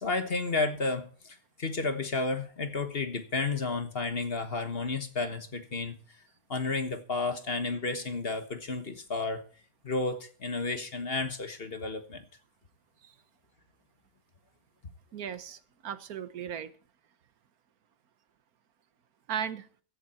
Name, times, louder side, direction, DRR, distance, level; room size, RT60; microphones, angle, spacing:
voice 1, 0.0-6.0 6.5-9.4 9.8-12.2, left 3 dB, 40° left, 9 dB, 1.4 m, -32 dB
voice 2, 15.1-16.7 19.3-19.7, right 8 dB, 70° right, 14 dB, 1.4 m, -36 dB
15.5 x 11.5 x 4.3 m, 0.42 s
omnidirectional pair, 1.6 m